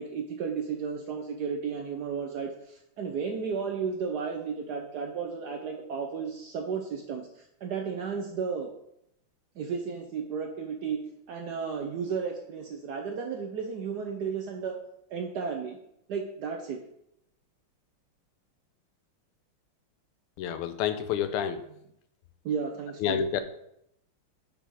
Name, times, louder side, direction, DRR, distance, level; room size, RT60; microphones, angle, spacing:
voice 1, 0.0-8.7 9.6-11.0 11.3-14.8 15.1-15.8 16.1-16.8 22.4-23.2, right 6 dB, 70° right, 3 dB, 1.0 m, -33 dB
voice 2, 20.4-21.6 23.0-23.4, left 8 dB, 85° left, 10 dB, 1.5 m, -28 dB
6.0 x 5.2 x 4.6 m, 0.77 s
omnidirectional pair, 2.4 m